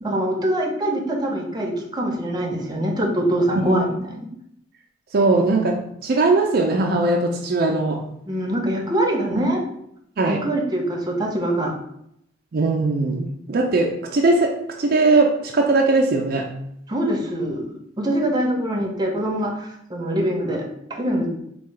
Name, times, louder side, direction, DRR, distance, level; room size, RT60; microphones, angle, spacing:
voice 1, 0.0-4.3 8.3-9.6 10.3-11.7 16.9-21.3, right 1 dB, 20° right, 0 dB, 0.7 m, -24 dB
voice 2, 5.1-8.0 10.2-10.4 12.5-16.5, right 3 dB, 55° right, 1 dB, 0.4 m, -20 dB
3.6 x 2.3 x 4.4 m, 0.73 s
head